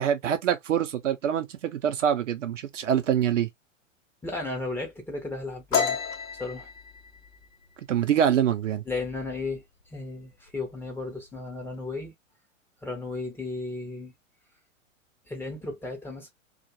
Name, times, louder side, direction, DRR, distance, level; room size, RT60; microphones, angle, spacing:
voice 1, 0.0-3.5 7.9-8.8, right 9 dB, 70° right, 0.7 m, -25 dB
voice 2, 4.2-6.0 6.4-6.7 8.9-12.1 12.8-14.1 15.3-16.3, left 3 dB, 5° left, 0.7 m, -34 dB
sound 1, 5.7-9.2 9.5-9.8 10.2-10.7 11.0-11.7, left 6 dB, 90° left, 0.7 m, -31 dB
2.4 x 2.1 x 2.9 m
figure-of-eight pair, 105°, 39 cm